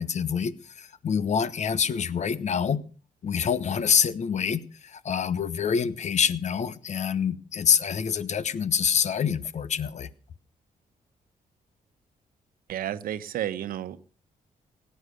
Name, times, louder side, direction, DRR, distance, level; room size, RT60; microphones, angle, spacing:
voice 1, 0.0-2.8 3.2-10.1, left 7 dB, 50° left, 1.1 m, -26 dB
voice 2, 12.7-14.0, right 11 dB, 85° right, 1.0 m, -31 dB
17.5 x 9.1 x 6.5 m
cardioid pair, 105°, 15 cm